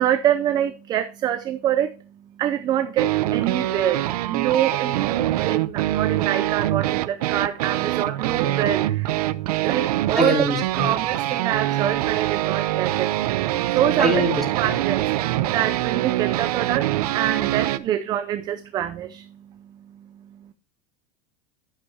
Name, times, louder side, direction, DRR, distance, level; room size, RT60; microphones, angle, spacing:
voice 1, 0.0-10.4 10.8-14.3 14.5-20.5, right 11 dB, 20° right, 9 dB, 0.5 m, -26 dB
sound 1, 3.0-17.8, right 15 dB, 85° right, 0.7 m, -24 dB
voice 2, 10.1-10.6 14.0-14.7, right 1 dB, ahead, -2 dB, 3.5 m, -22 dB
11.5 x 10.5 x 2.8 m, 0.34 s
supercardioid pair, 165°, 19 cm